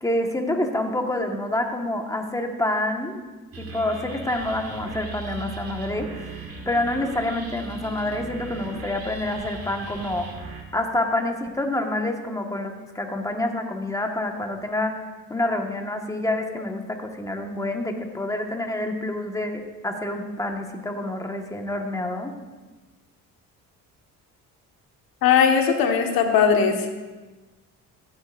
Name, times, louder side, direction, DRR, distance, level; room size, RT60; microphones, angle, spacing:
voice 1, 0.0-3.2 3.6-6.2 6.6-10.3 10.7-22.3, left 1 dB, 10° left, 3 dB, 1.5 m, -27 dB
sound 1, 3.5-10.6, right 4 dB, 45° right, 1.8 m, -38 dB
voice 2, 25.2-26.9, left 7 dB, 75° left, 4 dB, 1.5 m, -19 dB
15.0 x 9.5 x 2.6 m, 1.2 s
supercardioid pair, 70°, 35 cm